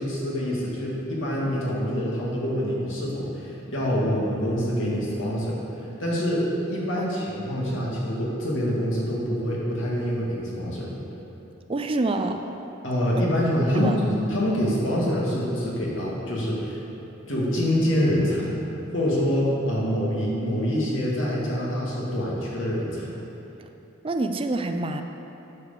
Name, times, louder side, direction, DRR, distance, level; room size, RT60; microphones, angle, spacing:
voice 1, 0.0-5.6 6.0-10.9 12.8-16.8 17.3-18.5 18.9-23.1, equal, 80° left, -5 dB, 2.2 m, -25 dB
voice 2, 11.7-12.4 13.7-14.0 23.6-23.7 24.0-25.0, right 2 dB, 30° right, 6 dB, 0.4 m, -27 dB
9.6 x 4.9 x 6.7 m, 2.9 s
head